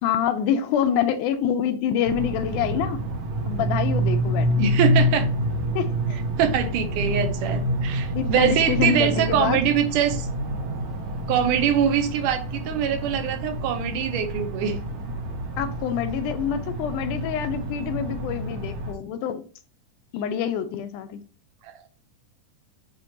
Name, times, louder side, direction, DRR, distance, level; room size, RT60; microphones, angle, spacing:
voice 1, 0.0-3.0 3.5-4.5 5.8-6.2 8.2-9.6 15.6-19.4 20.1-21.2, left 9 dB, 80° left, 2.1 m, -26 dB
sound 1, 2.0-18.9, right 1 dB, 60° right, 2.0 m, -27 dB
voice 2, 4.6-5.3 6.4-10.3 11.3-14.8 21.6-21.7, right 8 dB, 80° right, 2.3 m, -23 dB
9.5 x 4.3 x 2.9 m
omnidirectional pair, 3.7 m